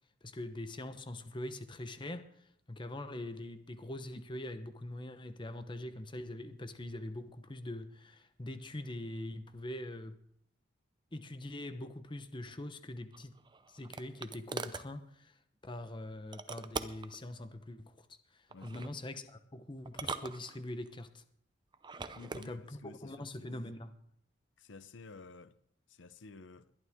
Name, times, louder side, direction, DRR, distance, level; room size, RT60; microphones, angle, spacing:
voice 1, 0.2-10.2 11.1-13.3 13.7-15.3 15.6-18.1 18.3-21.2 22.3-23.9, left 1 dB, 25° left, 0.9 m, -43 dB
sound 1, 13.1-14.9 16.3-17.2 18.5-18.9 19.9-20.9 21.7-22.5, right 4 dB, 25° right, 0.5 m, -42 dB
voice 2, 18.5-19.0 22.1-23.5 24.6-25.6 25.9-26.7, left 3 dB, 75° left, 0.7 m, -52 dB
21.0 x 11.5 x 3.6 m
head